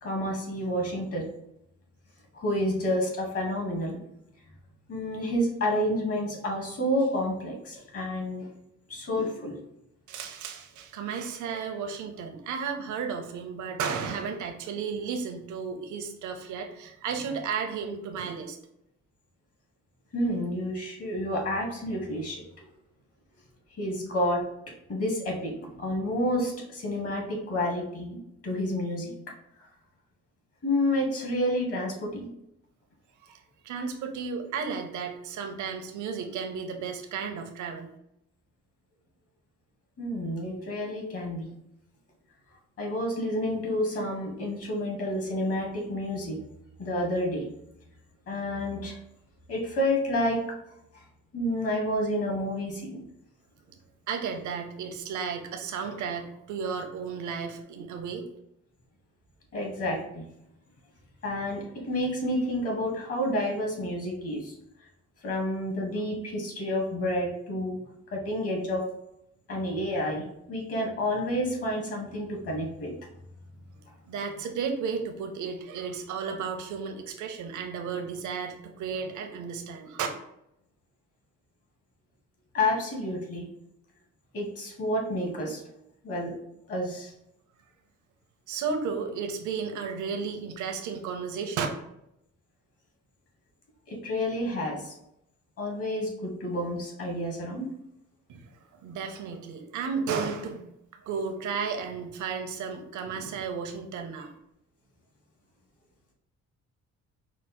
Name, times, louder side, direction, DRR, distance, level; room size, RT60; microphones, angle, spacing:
voice 1, 0.0-1.3 2.3-4.0 4.9-8.5 8.9-9.5 20.1-22.6 23.8-24.4 24.9-29.1 29.6-29.7 30.6-32.3 40.0-41.5 42.8-46.4 46.8-47.4 48.3-49.0 49.5-50.4 50.9-51.0 51.3-53.0 59.5-60.3 61.2-64.5 65.2-67.8 68.1-68.9 69.5-72.9 82.5-83.5 84.3-85.6 86.0-86.4 86.7-87.1 93.9-94.9 95.6-97.7, left 1 dB, 50° left, -1 dB, 1.6 m, -29 dB
voice 2, 10.1-18.6 33.2-37.9 54.1-58.3 74.1-80.1 88.5-91.7 98.3-98.5 98.8-100.7 101.0-104.3, right 6 dB, 75° right, 4 dB, 0.8 m, -33 dB
4.9 x 2.0 x 4.3 m, 0.80 s
cardioid pair, 90°, 30 cm